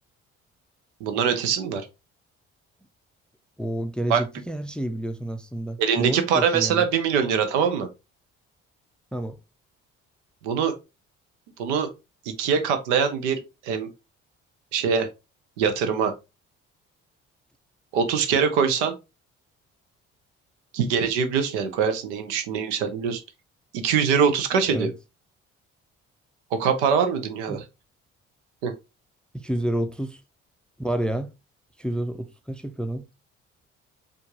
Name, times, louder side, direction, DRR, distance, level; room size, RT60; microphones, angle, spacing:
voice 1, 1.0-1.9 4.1-4.2 5.8-7.9 10.4-10.7 11.6-11.9 12.3-13.9 14.7-15.1 15.6-16.1 17.9-18.9 20.7-23.2 23.7-24.9 26.5-27.6 28.6-28.7, right 6 dB, 80° right, 0.7 m, -23 dB
voice 2, 3.6-6.9 9.1-9.4 24.7-24.9 27.5-27.6 29.3-30.2 30.8-31.3 31.8-33.1, right 1 dB, 5° left, 0.4 m, -29 dB
4.4 x 2.4 x 2.9 m
hypercardioid pair, 45°, 35 cm